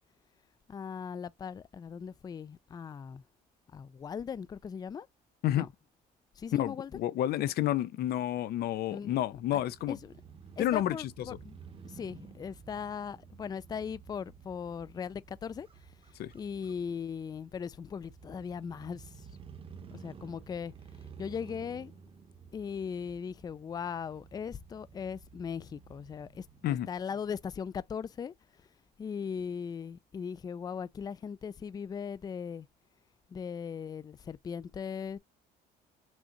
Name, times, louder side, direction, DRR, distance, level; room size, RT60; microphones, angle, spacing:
voice 1, 0.7-3.2 3.7-5.1 5.5-5.7 6.4-6.9 8.9-9.2 9.5-9.6 9.9-10.1 10.6-11.6 11.8-15.7 16.3-19.1 19.9-20.7 21.2-21.9 22.5-28.3 29.0-32.7 33.3-35.2, left 7 dB, 25° left, 0.3 m, -39 dB
voice 2, 6.5-10.0 10.6-11.4 16.2-16.3 26.6-26.9, left 13 dB, 70° left, 0.6 m, -30 dB
Crow / Motorcycle, 9.0-26.8, right 6 dB, 35° right, 0.9 m, -53 dB
6.2 x 2.5 x 3.0 m
cardioid pair, 110°, 17 cm